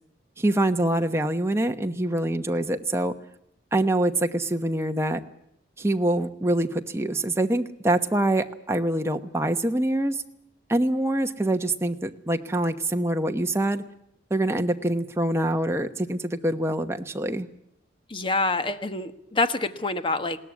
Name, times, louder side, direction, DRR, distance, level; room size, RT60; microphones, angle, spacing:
voice 1, 0.4-3.1 3.7-5.2 5.8-10.2 10.7-13.8 14.3-17.5, right 1 dB, 15° right, 6 dB, 1.0 m, -25 dB
voice 2, 18.1-20.4, left 3 dB, 30° left, 10 dB, 1.3 m, -26 dB
21.0 x 17.5 x 9.6 m, 0.78 s
head